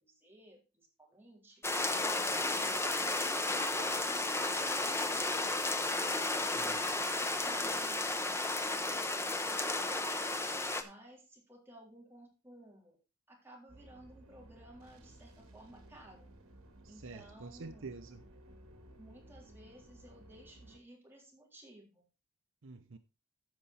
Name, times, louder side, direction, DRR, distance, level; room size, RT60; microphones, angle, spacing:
voice 1, 0.0-3.1 3.4-5.8 6.4-8.4 8.7-10.3 10.8-13.0 13.3-16.3 16.9-17.9 19.0-22.0, right 1 dB, 10° right, 3.7 m, -57 dB
sound 1, 1.6-10.8, left 2 dB, 10° left, 0.9 m, -33 dB
sound 2, 13.7-20.8, right 1 dB, 75° right, 2.5 m, -57 dB
voice 2, 16.8-18.2 22.6-23.0, right 3 dB, 60° right, 0.7 m, -47 dB
14.5 x 5.7 x 4.2 m
head